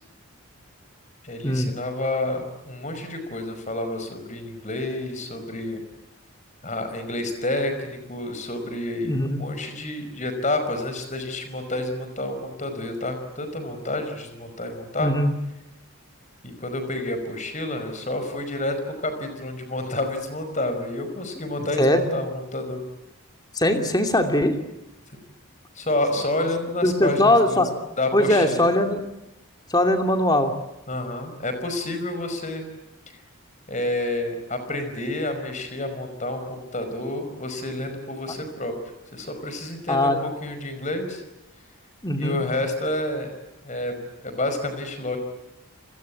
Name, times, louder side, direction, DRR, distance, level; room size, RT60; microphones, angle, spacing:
voice 1, 1.2-5.8 6.6-15.1 16.4-22.8 25.7-27.7 28.0-28.7 30.9-32.6 33.7-38.7 39.1-41.2 42.2-43.3 43.6-44.0 44.2-45.2, left 1 dB, 35° left, 8 dB, 5.2 m, -29 dB
voice 2, 9.0-9.4 15.0-15.3 21.8-22.0 23.5-24.5 26.8-27.7 28.1-29.0 29.7-30.5 39.9-40.2 42.0-42.4, left 1 dB, 20° left, 5 dB, 2.7 m, -20 dB
30.0 x 21.5 x 8.5 m, 0.91 s
head